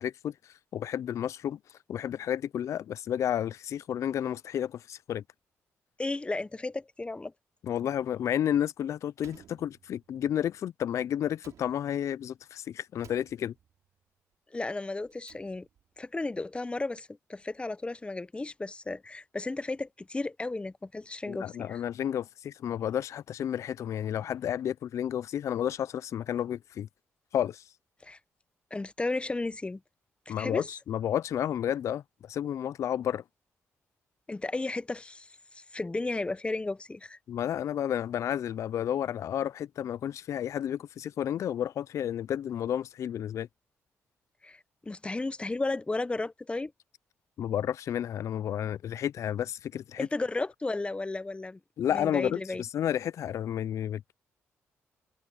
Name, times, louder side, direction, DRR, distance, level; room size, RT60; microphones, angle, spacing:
voice 1, 0.0-5.2 7.6-13.5 21.3-26.9 27.3-27.7 30.3-33.2 37.3-43.5 47.4-50.1 51.8-54.1, left 10 dB, 65° left, 0.3 m, -31 dB
voice 2, 6.0-7.3 14.5-15.7 16.0-21.8 28.0-28.2 28.7-29.8 30.3-30.7 34.3-37.2 44.4-46.7 50.0-51.6 51.9-52.6, left 2 dB, 20° left, 0.8 m, -34 dB
Slam, 9.2-10.3 11.3-12.3 13.0-13.9 15.0-16.0, right 9 dB, 75° right, 4.2 m, -57 dB
cardioid pair, 75°, 5 cm